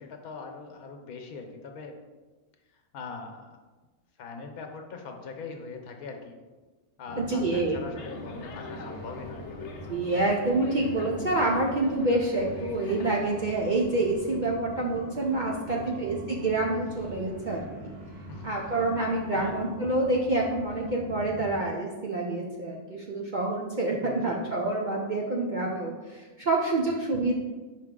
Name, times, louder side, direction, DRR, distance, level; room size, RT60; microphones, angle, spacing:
voice 1, 0.0-2.0 2.9-3.5 4.2-6.4 7.0-9.8 15.7-16.0 18.3-18.5 19.3-19.6 24.0-24.4, left 4 dB, 85° left, 4 dB, 1.3 m, -41 dB
sound 1, 7.1-21.6, right 1 dB, 30° right, 1.1 m, -43 dB
voice 2, 7.2-7.8 9.9-17.9 18.4-27.3, right 2 dB, 60° right, -2 dB, 0.5 m, -27 dB
sound 2, 8.0-13.3, left 4 dB, 60° left, 0.9 m, -43 dB
5.8 x 4.6 x 3.7 m, 1.3 s
omnidirectional pair, 1.5 m